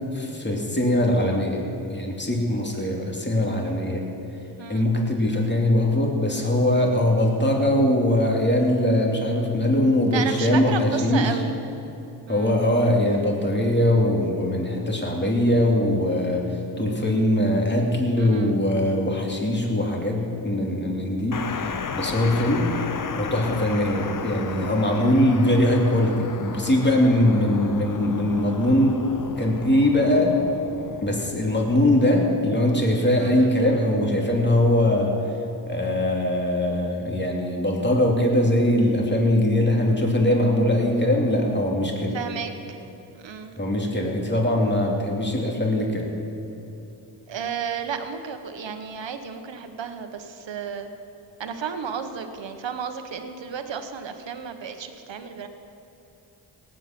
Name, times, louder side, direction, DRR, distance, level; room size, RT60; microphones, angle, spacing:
voice 1, 0.1-1.6 1.9-4.0 4.7-11.4 12.3-22.7 23.1-29.0 29.4-30.4 31.0-35.2 35.7-42.2 43.6-46.1, left 1 dB, 25° left, 0 dB, 2.7 m, -21 dB
voice 2, 10.1-11.6 12.3-12.6 18.2-18.6 23.3-23.6 33.2-33.5 42.1-42.8 43.1-43.6 47.3-50.9 51.4-55.5, right 7 dB, 70° right, 8 dB, 1.3 m, -33 dB
sound 1, 21.3-31.8, left 5 dB, 45° left, 0.9 m, -34 dB
18.0 x 8.7 x 6.0 m, 2.9 s
cardioid pair, 45°, 46 cm